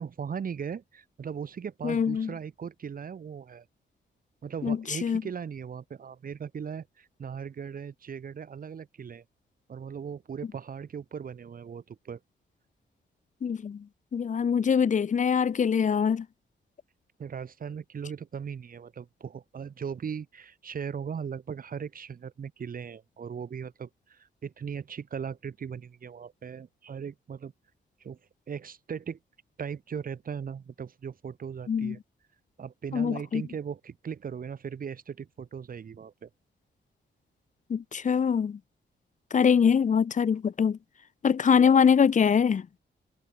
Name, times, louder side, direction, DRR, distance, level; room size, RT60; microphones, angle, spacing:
voice 1, 0.0-3.7 4.4-9.2 9.7-12.2 17.2-27.5 28.0-28.2 28.5-29.2 29.6-32.0 32.6-36.3, right 7 dB, 45° right, 3.8 m, -38 dB
voice 2, 1.8-2.3 4.6-5.2 13.4-13.8 14.1-16.2 31.7-31.9 32.9-33.4 37.7-38.6 39.3-40.8 41.2-42.6, left 7 dB, 40° left, 1.1 m, -23 dB
wide cardioid pair, 170°, 20 cm